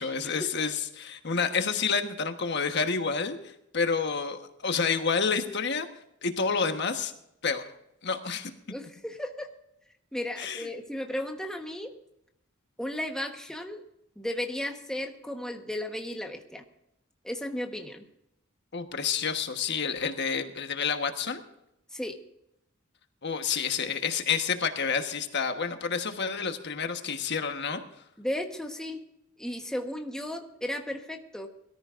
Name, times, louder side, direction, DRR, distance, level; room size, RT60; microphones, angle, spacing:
voice 1, 0.0-3.4 3.7-5.9 6.2-7.1 7.4-7.6 8.0-8.5 10.4-10.7 18.7-21.4 23.2-27.8, left 5 dB, 55° left, 7 dB, 1.3 m, -29 dB
voice 2, 8.7-9.5 10.1-11.9 12.8-13.8 14.2-16.6 17.2-18.1 21.9-22.2 28.2-29.0 29.4-31.5, left 1 dB, 5° left, 3 dB, 1.2 m, -34 dB
22.0 x 14.0 x 2.6 m, 0.82 s
head